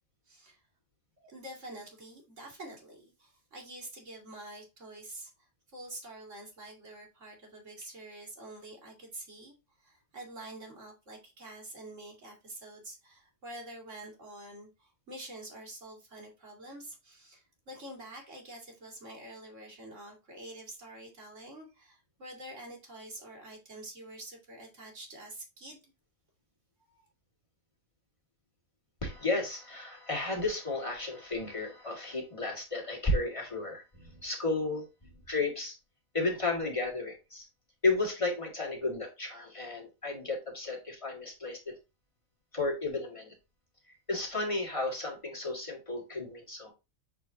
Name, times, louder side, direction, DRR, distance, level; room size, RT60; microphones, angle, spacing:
voice 1, 0.3-0.6 1.2-5.3 5.7-25.9 26.8-27.1, right 1 dB, 60° right, 2.7 m, -47 dB
voice 2, 29.0-34.9 35.3-35.8 36.1-37.5 37.8-41.7 42.5-43.3 44.1-46.7, left 2 dB, 25° left, 1.9 m, -33 dB
7.5 x 4.6 x 2.7 m
omnidirectional pair, 1.4 m